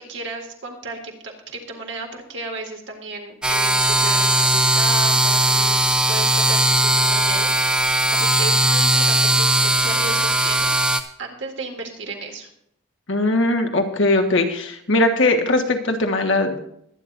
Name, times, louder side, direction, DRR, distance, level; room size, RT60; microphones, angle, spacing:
voice 1, 0.0-12.5, right 2 dB, 60° right, 1 dB, 2.2 m, -34 dB
sound 1, 3.4-11.0, right 1 dB, 5° right, 0.5 m, -18 dB
voice 2, 13.1-16.6, left 2 dB, 70° left, 4 dB, 1.4 m, -20 dB
22.0 x 9.4 x 2.6 m, 0.74 s
head